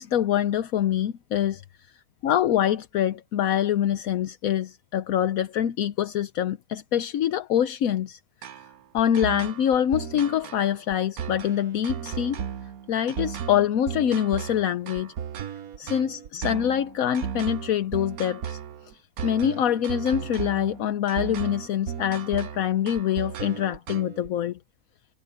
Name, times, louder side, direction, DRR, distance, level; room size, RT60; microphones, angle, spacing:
voice 1, 0.0-1.6 2.2-8.2 8.9-12.4 12.9-15.1 15.8-18.6 19.2-24.6, left 10 dB, 75° left, 1.2 m, -25 dB
sound 1, 8.4-24.3, right 8 dB, 90° right, 1.4 m, -35 dB
omnidirectional pair, 1.5 m